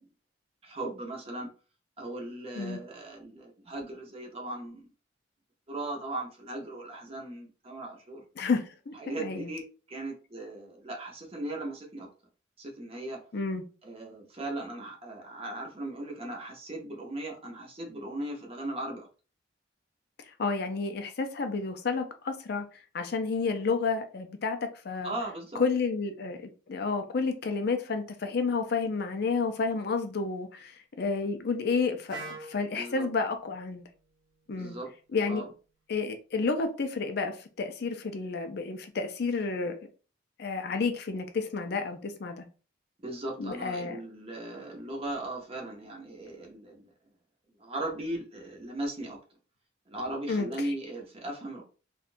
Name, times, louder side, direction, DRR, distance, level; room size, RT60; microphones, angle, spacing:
voice 1, 0.6-1.5 2.0-4.9 5.7-8.2 9.0-9.6 9.9-12.1 12.6-13.2 13.8-19.1 25.0-25.6 32.8-33.1 34.5-34.9 35.3-35.5 43.0-46.8 47.6-49.2 49.9-51.6, right 1 dB, 30° right, 0.8 m, -38 dB
voice 2, 8.4-9.5 13.3-13.6 20.2-25.1 25.5-33.9 34.5-34.8 35.1-35.4 35.9-39.7 40.4-42.4 43.4-44.0 50.3-50.7, left 4 dB, 55° left, 0.4 m, -31 dB
Wind instrument woodwind instrument, 32.1-36.0, right 3 dB, 60° right, 1.2 m, -48 dB
3.6 x 2.3 x 2.5 m
head